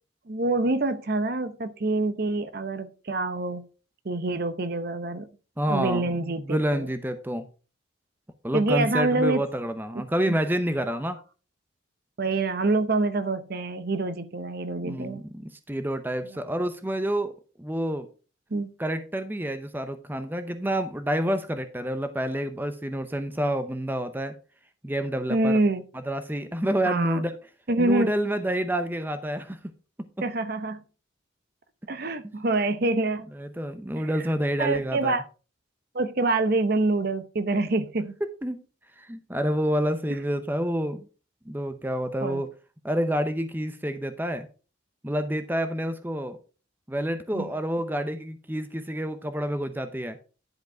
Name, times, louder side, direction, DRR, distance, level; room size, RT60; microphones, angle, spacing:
voice 1, 0.3-3.6 4.0-5.3 5.7-6.9 8.5-9.4 9.9-10.4 12.2-15.2 18.5-18.7 25.3-25.8 26.9-27.2 27.7-28.1 30.2-30.8 31.9-33.3 34.6-35.2 35.9-38.1 42.2-42.4 47.3-47.5, right 2 dB, 50° right, 0.7 m, -26 dB
voice 2, 5.6-6.1 6.4-7.5 8.4-11.2 14.8-17.3 17.6-18.1 18.8-24.3 24.8-25.6 26.1-27.4 27.8-29.6 30.0-30.3 32.3-32.4 33.3-35.2 38.4-38.6 39.0-41.1 41.5-42.5 42.8-44.5 45.0-46.4 46.9-50.2, equal, 10° right, 0.7 m, -28 dB
10.5 x 5.1 x 4.5 m
head